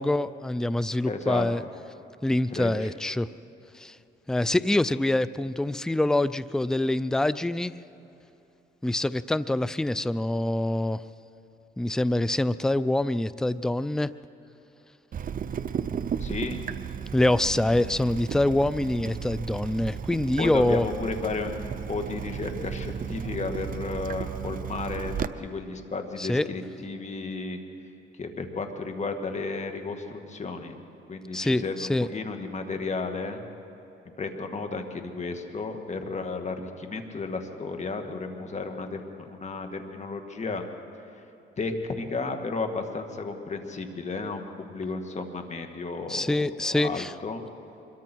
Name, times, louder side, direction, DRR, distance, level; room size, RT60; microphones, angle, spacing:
voice 1, 0.0-1.6 2.2-3.3 3.7-4.0 4.3-7.7 8.8-11.0 11.8-14.1 17.1-20.9 26.2-26.4 31.3-32.1 46.1-47.1, left 1 dB, 5° left, 16 dB, 0.4 m, -25 dB
voice 2, 1.1-1.5 2.5-2.9 16.2-16.6 20.4-27.6 28.2-30.7 31.1-33.4 34.2-40.6 41.6-46.3 46.6-47.5, left 3 dB, 35° left, 5 dB, 2.1 m, -33 dB
Water tap faucet / Drip, 15.1-25.3, right 8 dB, 45° right, 0.7 m, -34 dB
25.0 x 22.5 x 4.6 m, 2.9 s
cardioid pair, 90°, 20 cm